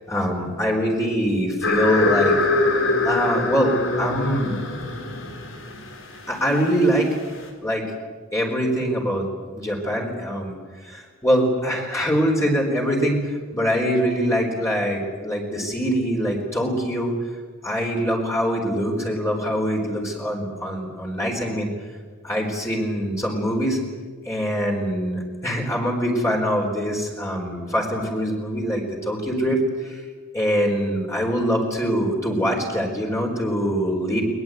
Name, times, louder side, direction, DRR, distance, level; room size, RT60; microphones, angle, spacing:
voice 1, 0.1-2.4 3.0-4.6 6.3-7.1 7.6-7.9 8.3-9.3 9.5-10.6 10.8-17.1 17.6-21.7 22.2-23.8 24.2-30.0 30.3-34.2, equal, 15° left, -1 dB, 4.4 m, -23 dB
sound 1, 1.6-7.4, left 2 dB, 90° left, 4.3 m, -24 dB
22.0 x 21.0 x 9.4 m, 1.5 s
head